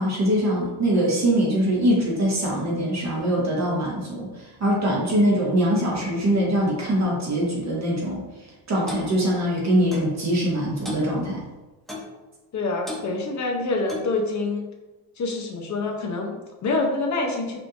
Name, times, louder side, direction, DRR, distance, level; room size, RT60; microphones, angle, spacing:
voice 1, 0.0-8.2 8.7-11.4, equal, 35° right, -4 dB, 1.2 m, -23 dB
Clock, 8.9-9.1 9.9-10.1 10.8-11.1 11.9-12.1 12.9-13.1 13.9-14.1, left 2 dB, ahead, 0.6 m, -34 dB
voice 2, 12.5-14.7 15.2-17.6, left 3 dB, 35° left, 1 dB, 0.7 m, -26 dB
5.1 x 3.2 x 2.5 m, 1.2 s
cardioid pair, 145°, 48 cm